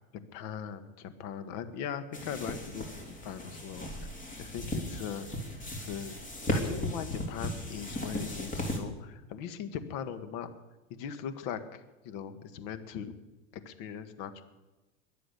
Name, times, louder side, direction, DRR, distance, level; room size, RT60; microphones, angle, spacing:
voice 1, 0.3-3.9 4.4-5.3 5.7-6.2 6.5-10.5 11.0-13.2 13.7-14.4, left 8 dB, 55° left, 11 dB, 1.7 m, -40 dB
sound 1, 2.1-8.8, left 1 dB, 20° left, 3.4 m, -36 dB
22.0 x 7.7 x 6.9 m, 1.1 s
hypercardioid pair, 100°, 40 cm